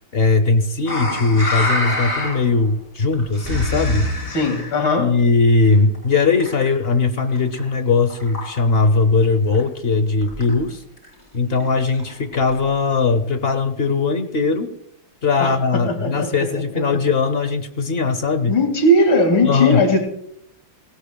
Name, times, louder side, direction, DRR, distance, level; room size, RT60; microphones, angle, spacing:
voice 1, 0.1-4.1 5.0-10.8 11.3-14.7 15.2-18.5 19.4-19.8, left 4 dB, 55° left, 11 dB, 0.6 m, -19 dB
sound 1, 0.9-2.6 3.0-4.8 5.6-6.9 7.2-7.7 8.1-8.9 9.2-9.3 9.5-9.6 9.9-10.0 10.2-10.6 11.0-11.1 11.5-12.8 13.4-13.5, left 1 dB, 25° left, 3.9 m, -26 dB
voice 2, 4.3-5.1 15.4-16.5 16.7-16.8 18.5-20.0, left 1 dB, 75° left, 4 dB, 3.1 m, -18 dB
18.5 x 17.0 x 2.3 m, 0.72 s
omnidirectional pair, 2.2 m